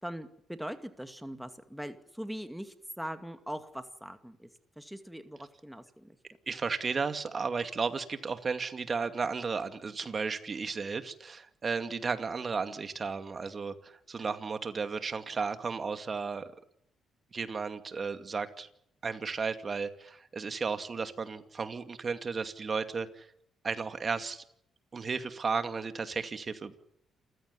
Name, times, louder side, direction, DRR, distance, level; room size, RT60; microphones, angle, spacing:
voice 1, 0.0-4.5 4.8-6.2, equal, ahead, 8 dB, 2.3 m, -41 dB
voice 2, 6.5-16.5 17.3-18.7 19.0-23.3 23.6-24.4 24.9-26.7, right 5 dB, 40° right, 9 dB, 2.4 m, -34 dB
28.5 x 15.5 x 9.9 m, 0.72 s
cardioid pair, 90°, 0 cm